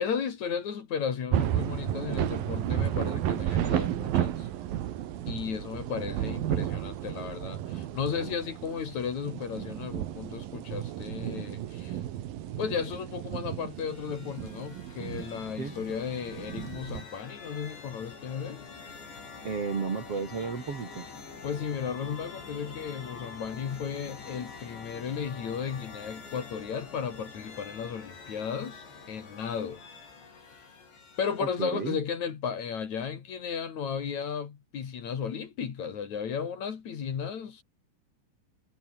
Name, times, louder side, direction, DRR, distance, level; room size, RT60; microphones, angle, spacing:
voice 1, 0.0-4.5 5.3-12.0 12.6-18.7 21.4-29.8 31.2-37.6, left 7 dB, 45° left, 3.0 m, -34 dB
sound 1, 1.3-17.0, right 12 dB, 60° right, 2.7 m, -33 dB
sound 2, 13.6-31.8, left 4 dB, 65° left, 9.9 m, -46 dB
voice 2, 19.4-21.1 31.4-32.0, right 5 dB, 35° right, 2.9 m, -33 dB
omnidirectional pair, 5.6 m